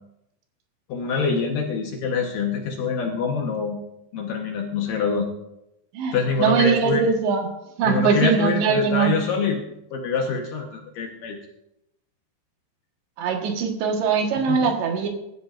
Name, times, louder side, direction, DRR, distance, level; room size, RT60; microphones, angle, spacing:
voice 1, 0.9-3.8 4.1-5.3 6.1-7.1 7.8-9.6 9.9-11.4 14.5-14.6, left 5 dB, 65° left, 1 dB, 2.3 m, -25 dB
voice 2, 5.9-7.5 7.8-9.1 13.2-15.1, right 6 dB, 80° right, 3 dB, 3.6 m, -21 dB
22.5 x 13.0 x 2.5 m, 0.85 s
omnidirectional pair, 5.0 m